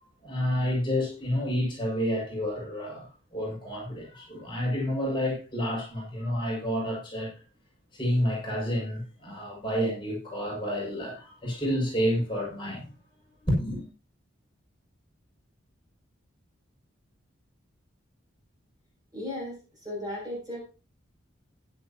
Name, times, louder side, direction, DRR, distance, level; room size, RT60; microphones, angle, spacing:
voice 1, 0.2-3.1 3.3-7.3 7.9-12.9 13.4-13.8, equal, 25° left, 6.2 m, -29 dB
voice 2, 19.1-20.7, left 1 dB, 20° right, 7.0 m, -36 dB
15.5 x 11.0 x 2.9 m
head